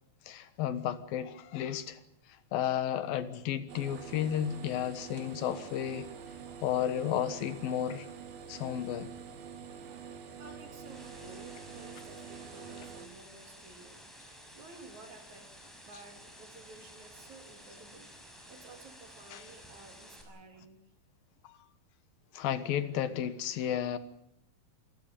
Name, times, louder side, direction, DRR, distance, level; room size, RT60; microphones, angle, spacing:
voice 1, 0.3-2.0 2.5-6.1 6.6-8.1 8.5-9.1 19.3-19.4 21.4-21.5 22.3-24.0, left 10 dB, 75° left, 3.0 m, -33 dB
sound 1, 3.7-13.1, right 7 dB, 85° right, 4.0 m, -46 dB
voice 2, 9.8-14.0 14.5-15.5 15.8-18.1 18.5-20.8, right 3 dB, 55° right, 3.8 m, -53 dB
sound 2, 10.4-20.2, equal, ahead, 5.6 m, -53 dB
27.5 x 15.0 x 8.7 m
omnidirectional pair, 4.3 m